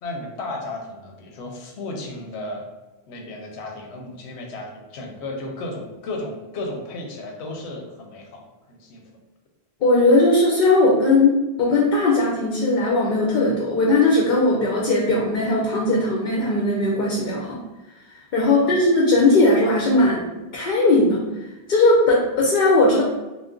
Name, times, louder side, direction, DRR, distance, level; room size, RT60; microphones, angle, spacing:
voice 1, 0.0-2.7 3.1-9.0 18.4-18.8, left 2 dB, 90° left, 2 dB, 0.9 m, -34 dB
voice 2, 9.8-17.6 18.3-20.2 20.5-21.2 21.7-23.0, left 2 dB, 60° left, -2 dB, 0.6 m, -18 dB
2.4 x 2.1 x 3.5 m, 1.1 s
omnidirectional pair, 1.1 m